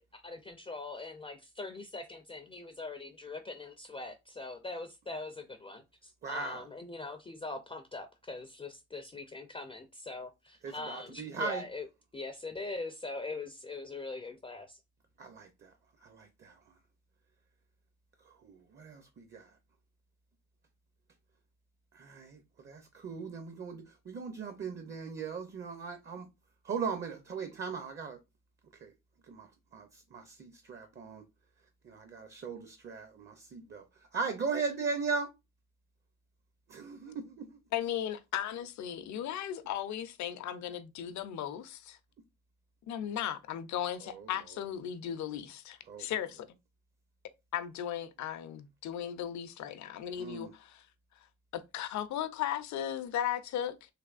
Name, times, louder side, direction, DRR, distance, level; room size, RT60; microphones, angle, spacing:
voice 1, 0.0-11.9 12.1-14.8, left 3 dB, 20° left, 0.4 m, -42 dB
voice 2, 6.2-6.7 10.6-11.6 15.2-15.7 16.0-16.6 18.4-19.5 21.9-26.3 26.6-28.2 28.8-28.9 29.3-29.5 29.7-31.2 31.8-33.8 34.1-35.3 36.7-37.6 44.1-44.3 45.9-46.1 50.2-50.5, right 5 dB, 35° right, 0.6 m, -38 dB
voice 3, 37.7-42.0 42.9-46.5 47.5-50.8 51.5-53.8, left 10 dB, 70° left, 0.6 m, -36 dB
3.3 x 3.0 x 2.4 m
cardioid pair, 90°, 30 cm